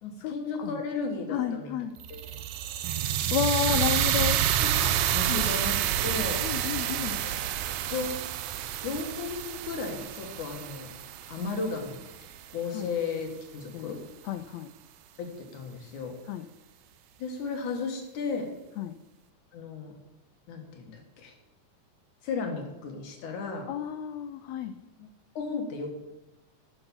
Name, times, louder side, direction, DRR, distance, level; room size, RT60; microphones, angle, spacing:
voice 1, 0.0-1.7 2.1-2.4 3.5-3.6 4.6-6.4 7.0-7.4 7.7-8.1 8.8-10.9 11.3-12.0 12.5-14.0 15.2-16.2 17.2-18.5 19.5-19.9 20.5-21.3 22.2-23.7 25.0-25.1 25.4-25.9, left 4 dB, 70° left, 3 dB, 2.9 m, -35 dB
voice 2, 1.3-1.9 3.3-4.4 5.3-5.5 6.4-7.2 12.7-12.9 13.7-14.0 14.2-14.7 16.3-16.4 18.8-19.0 23.7-24.7, left 9 dB, 90° left, 10 dB, 1.5 m, -31 dB
sound 1, 2.0-12.2, right 11 dB, 75° right, 1.9 m, -29 dB
11.0 x 6.0 x 7.0 m, 1.0 s
omnidirectional pair, 3.7 m